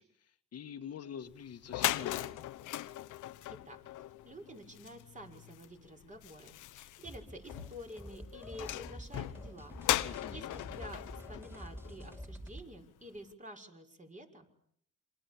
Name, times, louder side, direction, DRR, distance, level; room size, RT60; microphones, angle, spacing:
voice 1, 0.0-2.2 10.0-10.5, left 8 dB, 55° left, 8 dB, 1.6 m, -46 dB
sound 1, 1.3-1.4 1.6-12.4, left 14 dB, 85° left, 1.1 m, -39 dB
voice 2, 3.5-3.8 4.2-14.5, equal, 25° right, 5 dB, 6.4 m, -50 dB
sound 2, 7.0-12.7, equal, 10° right, 6.0 m, -48 dB
28.0 x 26.5 x 7.2 m, 0.66 s
cardioid pair, 90°, 30 cm